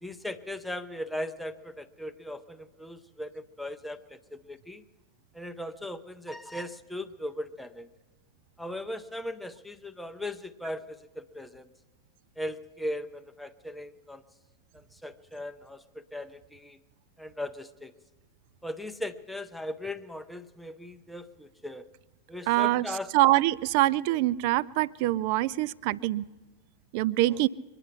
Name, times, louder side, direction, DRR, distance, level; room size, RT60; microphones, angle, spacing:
voice 1, 0.0-4.8 5.3-7.9 8.6-11.7 12.4-14.2 14.7-16.8 17.2-17.9 18.6-21.9 22.3-23.1 27.3-27.4, left 1 dB, ahead, 8 dB, 0.7 m, -38 dB
voice 2, 22.5-22.9 23.1-26.2 26.9-27.5, right 16 dB, 45° right, 21 dB, 0.4 m, -24 dB
24.0 x 9.8 x 5.8 m, 1.2 s
figure-of-eight pair, 90°, 0 cm